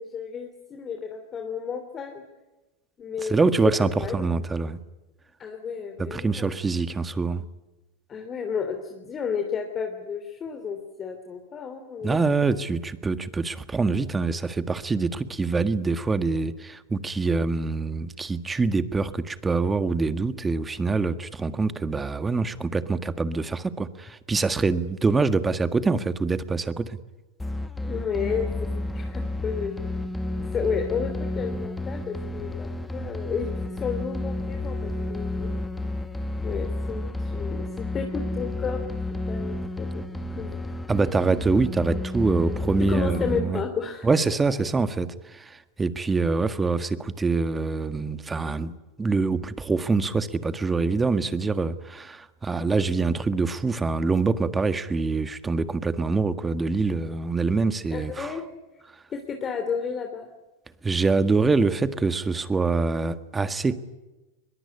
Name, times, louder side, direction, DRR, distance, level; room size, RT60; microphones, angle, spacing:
voice 1, 0.0-2.2 3.0-3.3 3.6-4.4 5.4-6.5 8.1-12.2 27.9-28.7 28.9-29.7 30.5-35.5 36.4-38.8 39.1-40.0 40.3-40.6 40.9-41.0 42.9-44.4 57.9-58.4 59.1-60.3, left 6 dB, 30° left, 5 dB, 3.3 m, -32 dB
voice 2, 3.3-4.8 6.1-7.4 12.0-27.0 40.9-43.6 44.0-58.3 60.8-63.8, right 4 dB, 15° right, 12 dB, 1.6 m, -25 dB
sound 1, 27.4-43.4, left 2 dB, 10° left, 2.2 m, -31 dB
22.0 x 22.0 x 9.9 m, 1.1 s
hypercardioid pair, 100°, 0 cm